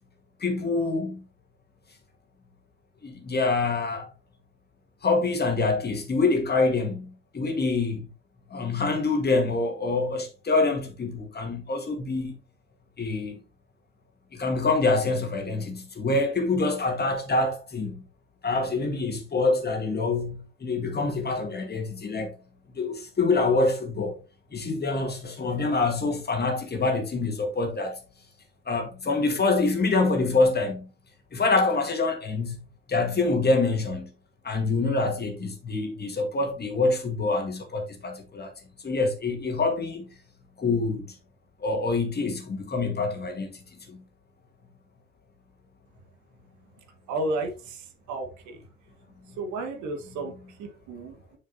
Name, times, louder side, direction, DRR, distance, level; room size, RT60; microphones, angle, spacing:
voice 1, 0.4-1.2 3.0-4.1 5.0-8.1 8.5-12.3 13.0-13.4 14.3-18.0 18.4-22.3 22.7-24.2 24.5-28.0 28.7-30.9 31.3-32.6 32.9-34.1 34.4-38.5 38.8-40.0 40.6-41.1 41.6-43.6 43.9-44.0, left 3 dB, 30° left, 2.0 m, -26 dB
voice 2, 47.1-48.6 49.4-51.4, right 2 dB, 60° right, 1.7 m, -33 dB
6.7 x 6.6 x 2.8 m
hypercardioid pair, 60°, 33 cm